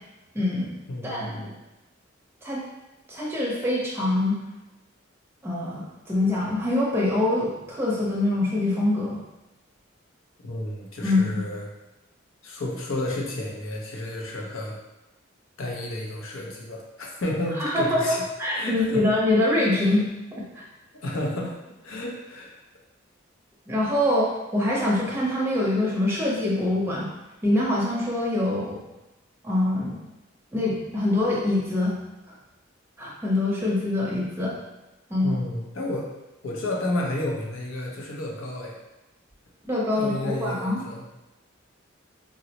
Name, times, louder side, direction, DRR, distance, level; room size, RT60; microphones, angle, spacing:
voice 1, 0.3-0.7 1.0-1.3 2.4-2.6 3.1-4.3 5.4-9.2 11.0-11.4 17.6-20.0 20.5-20.6 23.7-27.1 27.4-28.8 29.4-30.0 30.5-31.9 33.0-34.5 35.1-35.4 39.7-40.8, left 1 dB, 10° right, -5 dB, 0.6 m, -24 dB
voice 2, 0.9-1.5 10.4-11.7 12.4-14.8 15.6-18.2 18.5-19.0 19.8-20.0 21.0-21.5 21.8-22.5 35.2-36.1 36.4-38.8 39.9-41.0, left 1 dB, 80° left, -1 dB, 0.6 m, -31 dB
3.7 x 2.0 x 2.8 m, 1.0 s
head